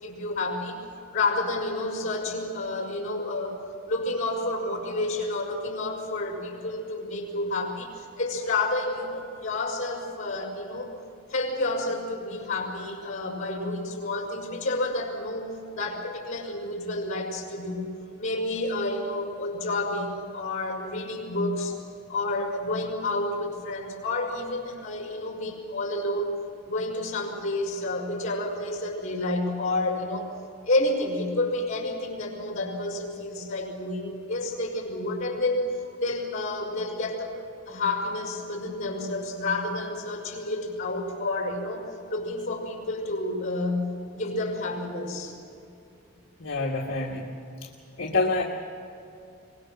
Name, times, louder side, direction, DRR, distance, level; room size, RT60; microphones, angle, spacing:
voice 1, 0.0-3.6 3.9-10.9 11.3-21.8 22.1-26.4 26.6-30.3 30.6-35.7 36.0-37.3 37.7-45.4, left 2 dB, 35° left, 2 dB, 5.7 m, -30 dB
voice 2, 46.4-47.3 48.0-48.4, left 3 dB, 60° left, -2 dB, 1.7 m, -27 dB
23.5 x 21.0 x 6.3 m, 2.7 s
head